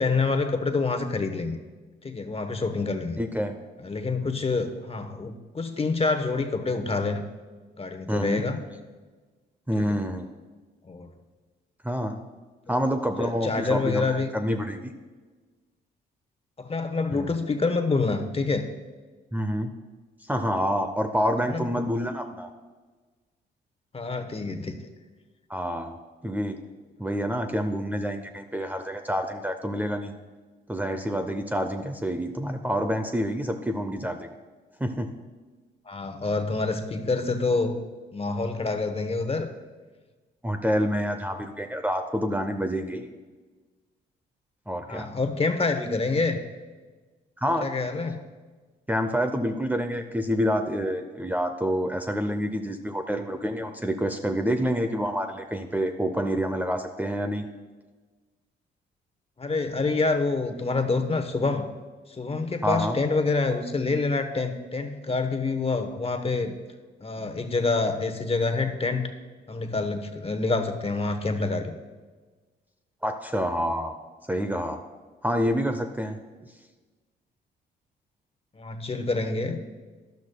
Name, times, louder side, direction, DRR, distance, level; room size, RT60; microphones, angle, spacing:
voice 1, 0.0-1.6 2.0-3.2 3.8-7.2 7.8-8.6 9.8-10.0 10.8-11.1 13.2-14.3 16.6-18.7 21.5-21.6 23.9-24.8 35.9-37.8 38.1-39.5 44.8-46.4 47.6-48.2 59.4-61.7 62.2-66.6 67.0-69.1 69.5-71.8 78.5-79.6, left 3 dB, 30° left, 7 dB, 1.1 m, -27 dB
voice 2, 3.2-3.5 8.1-8.4 9.7-10.3 11.8-12.2 12.7-14.9 17.1-17.4 19.3-19.7 20.3-22.5 25.5-26.0 26.2-26.6 27.0-30.1 30.7-34.3 34.8-35.1 40.4-43.1 44.7-45.1 47.4-47.7 48.9-57.4 62.6-63.0 73.0-73.9 74.3-74.8 75.2-76.2, equal, 10° right, 6 dB, 0.7 m, -27 dB
12.0 x 12.0 x 2.3 m, 1.3 s
supercardioid pair, 65°, 19 cm